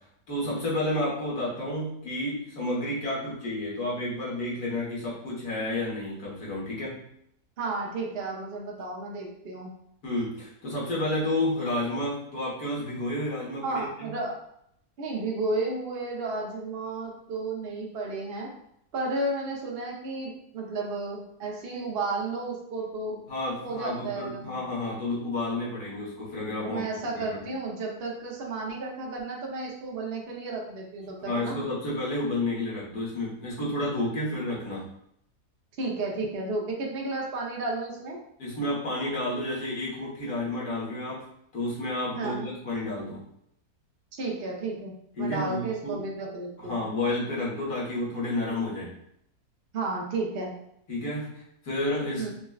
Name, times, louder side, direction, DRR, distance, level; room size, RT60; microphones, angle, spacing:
voice 1, 0.3-7.0 10.0-14.1 23.3-26.8 27.1-27.4 31.2-34.8 38.4-41.2 41.5-43.2 45.2-46.1 46.6-48.9 50.9-52.3, left 1 dB, 70° left, -6 dB, 1.7 m, -31 dB
voice 2, 7.6-9.7 13.6-14.4 15.0-18.5 18.9-23.2 23.6-24.6 26.6-31.6 35.8-38.2 42.1-42.5 44.1-46.8 49.7-50.5 52.2-52.3, right 3 dB, 50° right, -2 dB, 0.8 m, -32 dB
5.7 x 2.2 x 2.3 m, 0.73 s
omnidirectional pair, 1.7 m